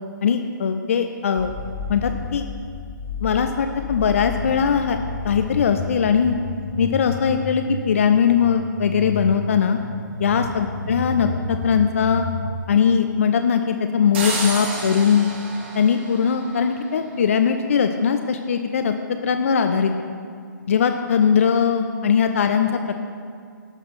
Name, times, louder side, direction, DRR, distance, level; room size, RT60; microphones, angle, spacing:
voice 1, 0.2-1.5 1.9-2.5 3.2-5.0 5.2-6.3 6.8-9.8 10.2-12.3 12.7-15.3 15.7-19.9 20.7-23.0, left 7 dB, 45° left, 6 dB, 0.5 m, -20 dB
sound 1, 1.4-12.5, left 3 dB, 5° right, 1.9 m, -32 dB
sound 2, 14.1-17.0, right 3 dB, 30° right, 1.3 m, -30 dB
12.0 x 4.2 x 6.0 m, 2.2 s
figure-of-eight pair, 135°, 11 cm